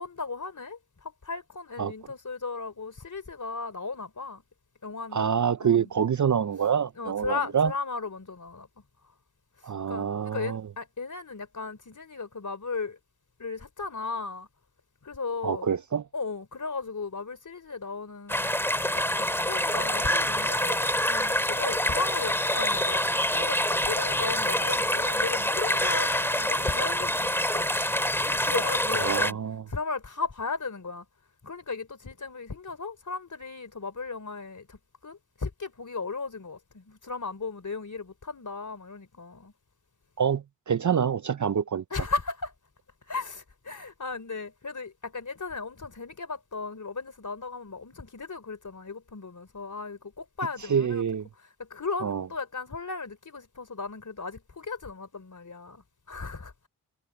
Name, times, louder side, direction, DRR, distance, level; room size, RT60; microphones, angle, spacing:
voice 1, 0.0-4.4 4.8-5.3 5.6-5.9 7.0-8.7 9.9-13.0 13.4-14.5 15.0-15.7 16.1-18.6 19.0-27.7 28.3-29.4 29.7-31.1 31.4-39.5 41.9-42.5 43.1-51.0 51.4-56.5, left 4 dB, 45° left, 3.5 m, -36 dB
voice 2, 5.1-7.7 9.6-10.6 15.4-16.0 28.9-29.6 40.2-41.8 50.7-51.2 52.0-52.2, right 7 dB, 45° right, 0.6 m, -26 dB
sound 1, 18.3-29.3, left 1 dB, 5° left, 2.2 m, -26 dB
cardioid pair, 45°, 43 cm